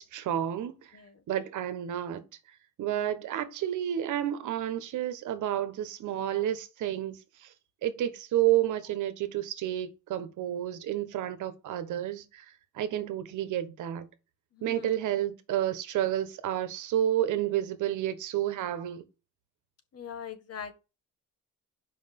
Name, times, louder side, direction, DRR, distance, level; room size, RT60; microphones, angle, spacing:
voice 1, 0.0-1.0 1.3-2.2 2.8-7.5 7.8-14.1 14.6-19.0, right 12 dB, 80° right, 1.3 m, -30 dB
voice 2, 14.5-14.9 19.9-20.7, left 7 dB, 55° left, 1.6 m, -41 dB
5.5 x 5.3 x 5.3 m
cardioid pair, 90°, 30 cm